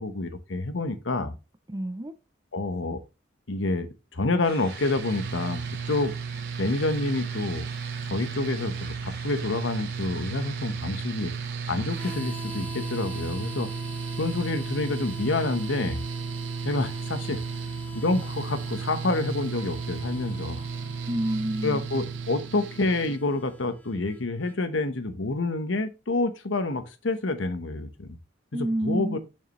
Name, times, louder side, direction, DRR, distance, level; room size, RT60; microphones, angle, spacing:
voice 1, 0.0-1.4 2.5-3.0 3.5-3.9 4.1-6.1 6.6-7.6 8.0-11.3 11.7-13.7 14.2-16.0 16.6-17.4 17.9-20.7 21.6-28.1 28.5-29.2, left 2 dB, 90° left, 1.1 m, -28 dB
voice 2, 1.7-2.1 21.1-21.8 28.5-29.2, right 1 dB, 20° right, 0.5 m, -28 dB
sound 1, 4.4-12.2, right 5 dB, 55° right, 1.7 m, -43 dB
Mechanical fan, 4.7-23.2, right 5 dB, 75° right, 0.6 m, -34 dB
Harmonica, 11.9-24.6, left 1 dB, 10° left, 0.8 m, -43 dB
6.6 x 6.4 x 3.0 m
head